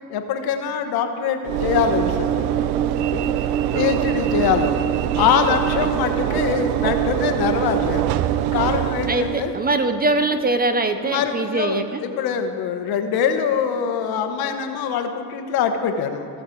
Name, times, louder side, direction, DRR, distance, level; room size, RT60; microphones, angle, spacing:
voice 1, 0.1-2.6 3.1-3.3 3.7-4.8 5.1-8.1 8.5-9.5 11.0-16.3, left 7 dB, 60° left, 6 dB, 1.1 m, -23 dB
Train / Engine / Alarm, 1.4-9.7, right 11 dB, 65° right, 0.6 m, -23 dB
voice 2, 9.1-12.0, right 2 dB, 20° right, 8 dB, 0.6 m, -22 dB
15.5 x 6.5 x 4.5 m, 2.5 s
supercardioid pair, 95°, 42 cm